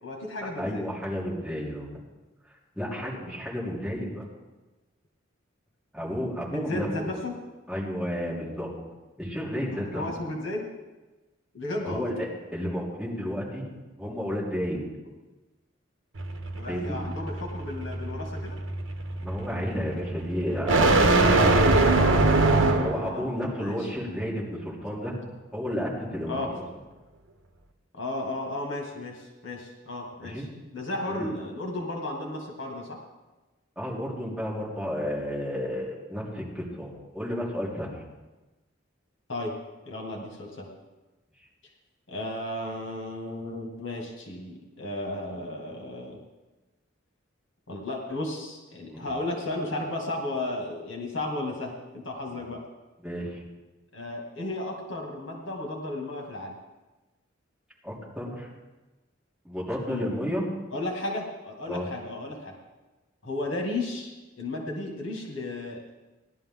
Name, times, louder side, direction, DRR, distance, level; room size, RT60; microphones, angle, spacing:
voice 1, 0.0-0.9 6.5-7.4 9.9-10.7 11.5-12.1 16.6-18.6 22.9-23.9 26.3-26.5 27.9-30.4 30.7-33.0 39.3-39.5 39.9-40.7 42.1-46.2 47.7-52.6 53.9-56.5 59.9-60.1 60.7-62.6 63.2-64.1 64.4-65.8, left 2 dB, 70° left, 0 dB, 2.2 m, -34 dB
voice 2, 0.6-1.9 2.7-4.2 5.9-7.2 7.7-8.7 9.2-10.0 11.8-14.8 16.6-17.0 19.2-21.5 22.7-25.1 25.5-26.6 30.2-30.5 31.1-31.3 33.8-38.0 48.9-49.1 52.3-52.4 53.0-53.4 57.8-58.5 59.4-60.4 61.7-61.9, equal, 5° right, -6 dB, 3.2 m, -32 dB
sound 1, 16.2-23.1, right 2 dB, 70° right, 1.2 m, -22 dB
17.5 x 11.5 x 3.8 m, 1.1 s
head